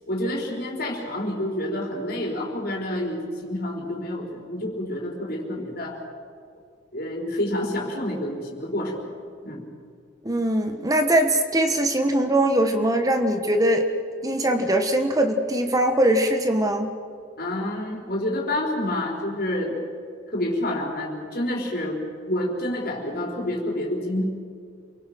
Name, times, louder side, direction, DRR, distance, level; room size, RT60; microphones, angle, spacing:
voice 1, 0.1-6.0 6.9-9.2 9.4-9.7 17.4-19.8 20.3-22.0 22.2-24.2, left 1 dB, 50° left, -1 dB, 4.9 m, -28 dB
voice 2, 10.2-13.9 14.2-17.0, right 1 dB, 20° right, 5 dB, 1.4 m, -21 dB
29.0 x 24.0 x 6.2 m, 2.2 s
head